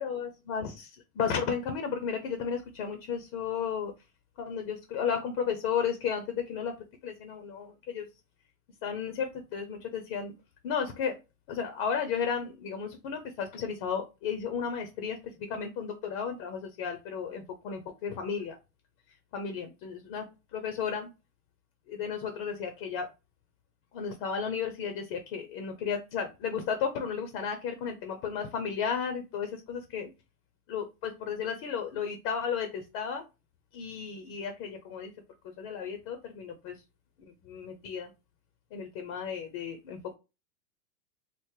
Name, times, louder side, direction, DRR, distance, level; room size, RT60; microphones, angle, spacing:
voice 1, 0.0-3.9 4.4-6.7 7.0-8.1 8.8-10.3 10.6-11.2 11.5-15.2 15.5-18.6 19.3-20.2 20.5-21.1 21.9-23.1 23.9-30.1 30.7-33.2 33.7-35.1 35.4-36.8 37.4-38.1 38.7-40.1, left 7 dB, 35° left, 7 dB, 0.6 m, -33 dB
3.2 x 2.0 x 3.6 m, 0.28 s
hypercardioid pair, 125°, 42 cm